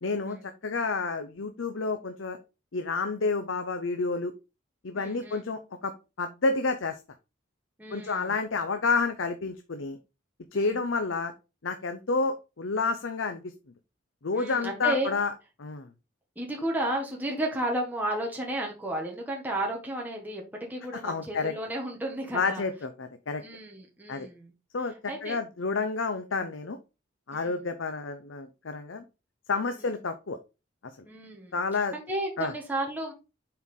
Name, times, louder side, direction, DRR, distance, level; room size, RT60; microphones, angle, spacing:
voice 1, 0.0-0.4 0.6-2.4 2.7-4.3 4.8-5.9 6.2-7.0 7.9-10.0 10.5-11.3 11.6-13.4 14.2-15.3 15.6-15.9 20.9-21.5 22.3-23.4 24.1-24.3 24.7-26.8 27.3-29.0 29.5-30.4 31.5-31.9 32.4-32.5, left 4 dB, 85° left, 8 dB, 0.7 m, -29 dB
voice 2, 4.9-5.4 7.8-8.3 10.5-10.8 14.3-15.1 16.3-20.4 20.7-22.6 23.4-24.5 25.1-25.4 27.3-27.6 31.0-31.5 31.9-33.1, right 1 dB, 10° right, -1 dB, 1.5 m, -33 dB
7.3 x 4.6 x 3.8 m, 0.28 s
head